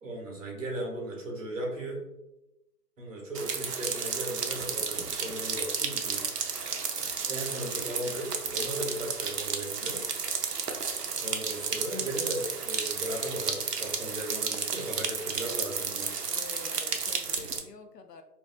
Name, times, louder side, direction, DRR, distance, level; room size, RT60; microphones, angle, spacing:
voice 1, 0.0-2.0 3.0-6.2 7.3-10.1 11.2-16.1, right 1 dB, 55° right, -1 dB, 1.0 m, -36 dB
sound 1, 3.3-17.6, right 5 dB, 90° right, 0.6 m, -32 dB
voice 2, 16.3-18.2, left 4 dB, 90° left, 7 dB, 0.6 m, -47 dB
2.5 x 2.4 x 2.2 m, 0.90 s
figure-of-eight pair, 150°, 47 cm